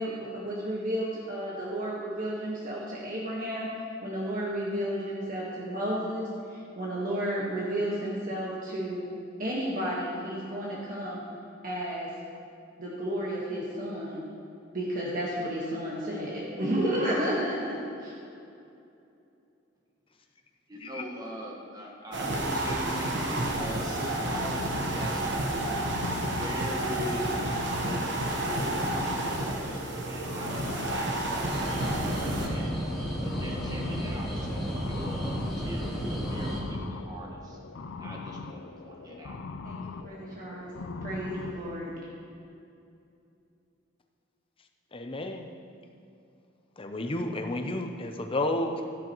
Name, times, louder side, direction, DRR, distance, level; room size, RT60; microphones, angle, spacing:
voice 1, 0.0-3.7 4.0-9.1 9.4-11.2 11.6-12.1 12.8-14.2 14.7-18.1 39.6-40.7 41.0-41.9, right 1 dB, 45° right, -6 dB, 1.4 m, -32 dB
voice 2, 20.7-25.4 26.3-27.4 27.7-32.7 33.2-37.6 38.0-39.4, equal, 20° right, -1 dB, 1.4 m, -41 dB
sound 1, 22.1-32.5, right 1 dB, 65° right, 1.2 m, -30 dB
sound 2, 23.4-41.8, left 4 dB, 85° left, 0.5 m, -41 dB
sound 3, 31.4-36.6, equal, ahead, 2.3 m, -33 dB
voice 3, 44.9-45.5 46.8-48.9, left 1 dB, 30° left, 5 dB, 0.7 m, -31 dB
13.0 x 10.5 x 3.1 m, 2.6 s
head